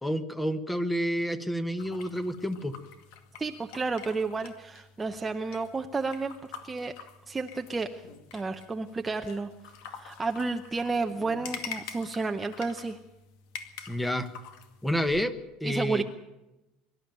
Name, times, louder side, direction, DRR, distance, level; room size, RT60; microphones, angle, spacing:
voice 1, 0.0-2.7 13.9-14.3 14.8-16.0, equal, 5° left, 10 dB, 1.2 m, -29 dB
sound 1, 1.8-15.2, left 7 dB, 70° left, 2.1 m, -46 dB
voice 2, 3.4-6.4 6.6-6.9 7.3-8.0 8.3-9.5 9.9-13.0 15.6-16.0, right 3 dB, 10° right, 5 dB, 0.7 m, -31 dB
23.5 x 12.0 x 9.1 m, 1.0 s
cardioid pair, 160°, 0 cm